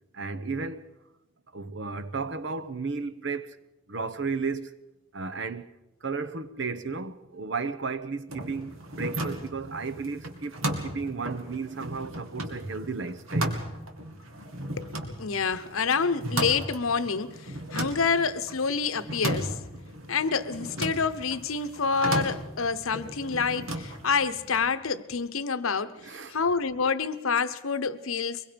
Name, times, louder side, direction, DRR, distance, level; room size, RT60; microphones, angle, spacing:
voice 1, 0.1-0.9 1.5-3.6 3.9-4.8 5.1-5.7 6.0-13.6 26.0-26.4, right 4 dB, 60° right, 0.9 m, -34 dB
sound 1, 8.3-24.7, right 1 dB, 75° right, 2.5 m, -35 dB
voice 2, 14.7-19.5 20.1-25.9 26.3-28.4, left 5 dB, 75° left, 0.9 m, -27 dB
23.5 x 21.5 x 5.2 m
head